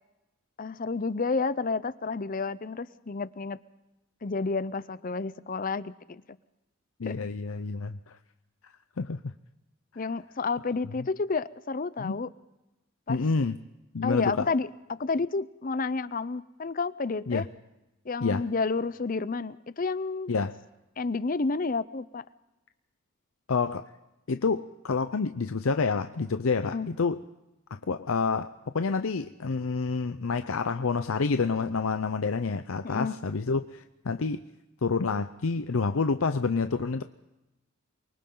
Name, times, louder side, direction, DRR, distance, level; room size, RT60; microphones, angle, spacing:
voice 1, 0.6-3.6 4.2-6.2 7.1-7.3 10.0-12.3 13.1-13.2 14.0-17.4 18.0-20.3 21.0-22.2 26.7-26.9 32.8-33.2, left 4 dB, 40° left, 16 dB, 0.6 m, -30 dB
voice 2, 7.0-8.2 9.0-9.2 12.0-12.2 13.1-13.6 13.9-14.5 17.3-17.5 18.2-18.4 20.3-20.5 23.5-23.8 24.3-27.2 27.9-34.4 34.8-37.0, left 4 dB, 80° left, 9 dB, 0.7 m, -28 dB
28.5 x 23.5 x 3.9 m, 0.98 s
head